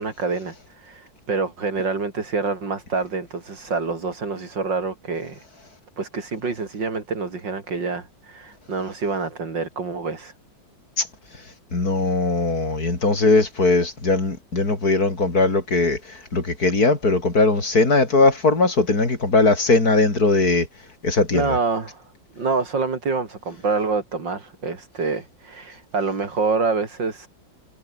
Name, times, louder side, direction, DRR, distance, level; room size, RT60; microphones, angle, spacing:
voice 1, 0.0-5.4 6.0-10.3 21.3-22.0 22.4-27.3, right 4 dB, 75° right, 4.3 m, -26 dB
voice 2, 11.7-16.0 16.3-20.7 21.0-21.5, left 3 dB, 50° left, 5.0 m, -19 dB
omnidirectional pair, 2.0 m